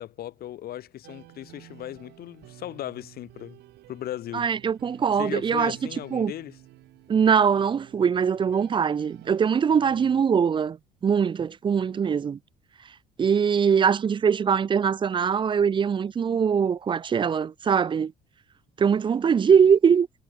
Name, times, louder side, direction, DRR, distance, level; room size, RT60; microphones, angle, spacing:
voice 1, 0.0-3.6 3.9-4.5 5.1-6.6, left 12 dB, 65° left, 3.7 m, -37 dB
sound 1, 1.0-10.2, right 17 dB, 80° right, 7.7 m, -50 dB
voice 2, 4.3-5.8 6.1-6.3 7.1-10.8 11.0-12.4 13.2-18.1 18.8-20.2, right 7 dB, 30° right, 0.5 m, -22 dB
cardioid pair, 110°, 17 cm